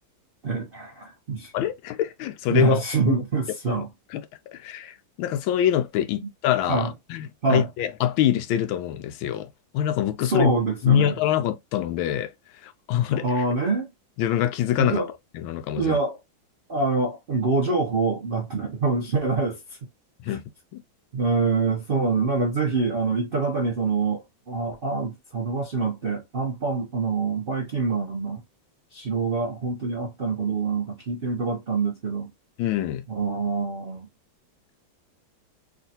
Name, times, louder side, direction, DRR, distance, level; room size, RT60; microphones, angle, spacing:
voice 1, 0.4-1.5 2.5-3.9 6.7-6.9 7.4-7.7 10.2-11.1 13.1-13.9 14.8-15.1 15.8-16.2 16.7-19.8 20.3-20.4 21.1-28.4 28.9-32.3 33.1-34.1, right 4 dB, 85° right, 0.4 m, -25 dB
voice 2, 1.5-3.1 3.7-3.8 4.1-4.2 4.5-10.5 10.8-12.3 12.6-13.4 14.2-15.1 15.3-16.0 20.2-20.4 20.7-20.8 32.6-33.0, left 11 dB, 85° left, 1.4 m, -25 dB
3.6 x 2.5 x 2.7 m
omnidirectional pair, 2.2 m